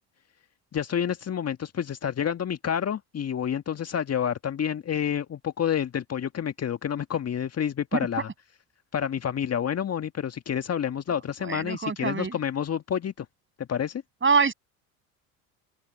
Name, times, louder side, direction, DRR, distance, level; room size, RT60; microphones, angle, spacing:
voice 1, 0.7-8.3 8.9-13.2 13.6-14.0, left 8 dB, 30° left, 1.7 m, -29 dB
voice 2, 11.4-12.4 14.2-14.5, right 5 dB, 25° right, 8.0 m, -24 dB
open air
hypercardioid pair, 70°, 46 cm